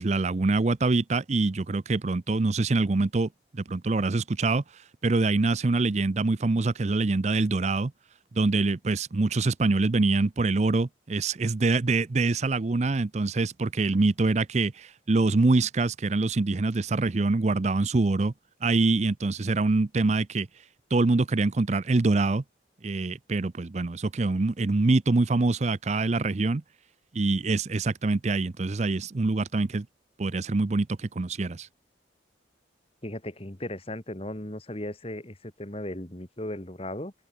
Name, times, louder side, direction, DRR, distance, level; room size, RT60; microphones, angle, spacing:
voice 1, 0.0-7.9 8.3-18.3 18.6-20.5 20.9-22.4 22.8-26.6 27.1-29.9 30.2-31.7, right 3 dB, 35° right, 0.5 m, -25 dB
voice 2, 33.0-37.1, left 1 dB, 30° left, 2.3 m, -36 dB
open air
head